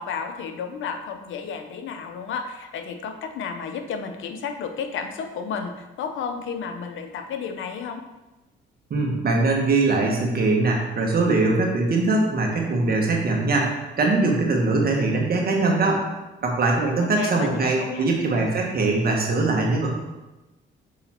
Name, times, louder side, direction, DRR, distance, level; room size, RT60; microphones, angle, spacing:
voice 1, 0.0-8.0 17.2-18.1, left 6 dB, 80° left, 6 dB, 0.8 m, -32 dB
voice 2, 8.9-16.0 16.4-19.9, right 3 dB, 50° right, 0 dB, 1.6 m, -22 dB
6.3 x 3.9 x 4.4 m, 1.1 s
cardioid pair, 90°, 20 cm